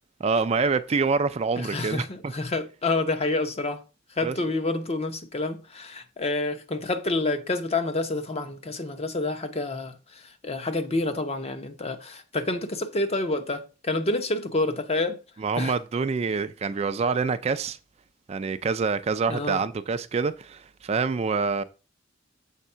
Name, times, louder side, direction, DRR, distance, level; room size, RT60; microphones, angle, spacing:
voice 1, 0.2-2.3 4.2-4.4 15.4-17.8 18.3-21.6, right 4 dB, 35° right, 0.4 m, -26 dB
voice 2, 1.6-3.8 4.1-15.2 15.6-15.7 19.3-19.6, left 2 dB, 30° left, 0.7 m, -28 dB
7.4 x 3.5 x 5.5 m
head